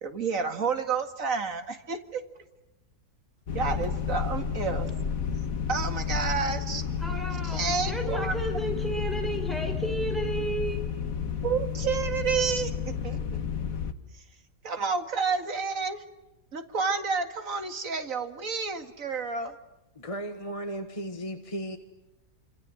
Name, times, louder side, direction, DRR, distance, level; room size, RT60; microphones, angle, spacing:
voice 1, 0.0-2.2 3.5-4.9 5.7-6.8 7.4-8.4 8.6-8.7 11.4-13.2 14.6-16.0 16.5-19.5, right 5 dB, 55° right, 7 dB, 2.5 m, -30 dB
sound 1, 3.5-13.9, left 7 dB, 60° left, 1.8 m, -31 dB
voice 2, 7.0-10.8, right 2 dB, ahead, 3 dB, 6.3 m, -32 dB
voice 3, 19.9-21.8, right 1 dB, 20° left, 5 dB, 1.5 m, -35 dB
27.5 x 27.0 x 7.9 m, 0.99 s
omnidirectional pair, 1.7 m